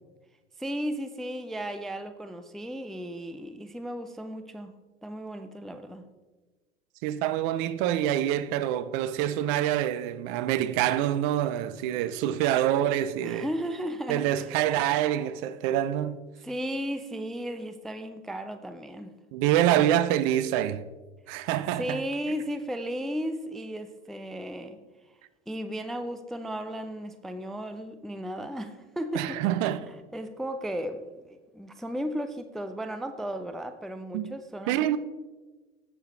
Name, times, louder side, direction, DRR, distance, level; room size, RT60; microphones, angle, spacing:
voice 1, 0.6-4.7 5.0-6.1 13.2-14.3 16.4-19.1 21.8-24.8 25.5-29.4 29.9-34.9, equal, ahead, 0.4 m, -35 dB
voice 2, 7.0-13.5 14.1-16.2 19.3-20.8 21.3-22.0 29.1-29.8 34.1-34.3 34.7-35.0, right 12 dB, 45° right, 0.6 m, -26 dB
16.0 x 6.6 x 3.2 m
figure-of-eight pair, 85°, 34 cm